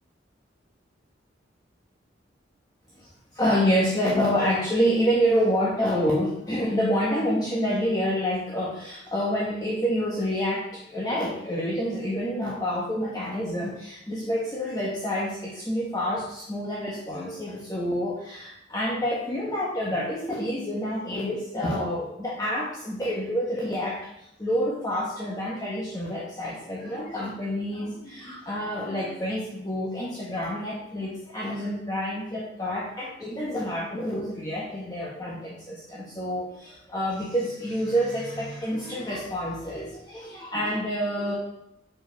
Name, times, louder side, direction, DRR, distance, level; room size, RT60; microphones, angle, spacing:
voice 1, 3.0-24.0 24.4-41.3, equal, 20° left, -5 dB, 1.3 m, -28 dB
7.4 x 5.3 x 4.6 m, 0.80 s
head